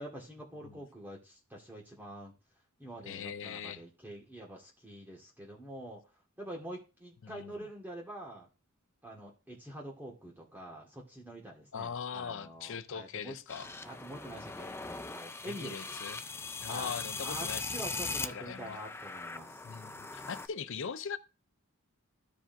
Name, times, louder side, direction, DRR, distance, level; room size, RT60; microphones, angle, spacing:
voice 1, 0.0-2.3 2.8-6.0 6.4-8.5 9.0-13.3 13.8-16.0 16.7-17.0 17.2-19.6, right 1 dB, 10° right, 1.7 m, -46 dB
voice 2, 3.1-3.8 7.2-7.7 11.7-13.7 15.4-16.3 16.6-17.9 18.3-18.8 19.6-21.2, left 6 dB, 60° left, 0.5 m, -41 dB
sound 1, 13.5-20.5, left 4 dB, 10° left, 0.4 m, -40 dB
14.0 x 4.9 x 2.6 m
head